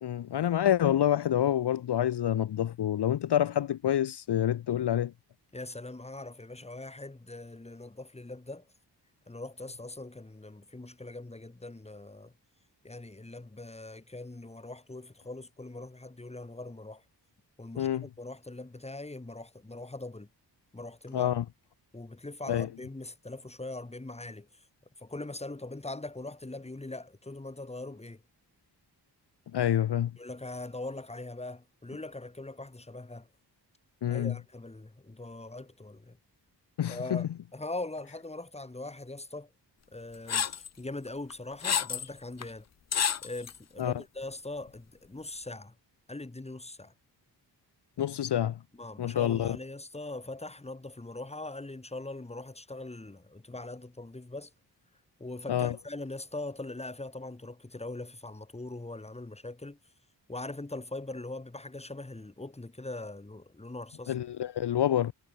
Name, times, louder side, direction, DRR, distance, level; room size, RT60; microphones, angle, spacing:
voice 1, 0.0-5.1 17.8-18.1 21.1-21.4 22.5-22.7 29.5-30.1 34.0-34.3 36.8-37.3 43.8-43.9 48.0-48.6 49.0-49.6 55.5-55.7 64.1-65.1, left 11 dB, 65° left, 0.8 m, -27 dB
voice 2, 5.5-8.6 9.3-12.3 12.8-17.0 17.6-20.3 20.7-21.3 21.9-24.5 25.0-28.2 30.2-33.3 34.1-36.2 36.9-39.5 39.9-42.7 43.2-45.7 46.1-46.9 48.8-54.5 55.2-59.8 60.3-64.2, left 2 dB, 15° left, 3.5 m, -41 dB
sound 1, 40.3-40.7 41.3-42.1 42.4-42.5 42.9-43.6, left 8 dB, 40° left, 0.6 m, -29 dB
wide cardioid pair, 175°, 43 cm